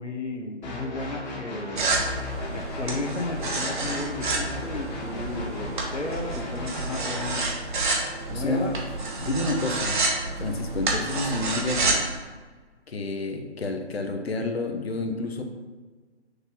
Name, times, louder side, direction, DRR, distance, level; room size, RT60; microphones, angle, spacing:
voice 1, 0.0-1.8 2.5-7.5 8.3-8.7, left 3 dB, 85° left, 3 dB, 1.2 m, -34 dB
sound 1, 0.6-7.5, left 2 dB, 40° left, 1.6 m, -37 dB
sound 2, 1.8-12.1, right 3 dB, 45° right, 1.2 m, -29 dB
voice 2, 8.3-8.8 9.2-10.0 10.4-12.1 12.9-15.4, left 2 dB, 60° left, 4 dB, 1.0 m, -29 dB
6.5 x 3.0 x 5.8 m, 1.4 s
figure-of-eight pair, 145°, 35 cm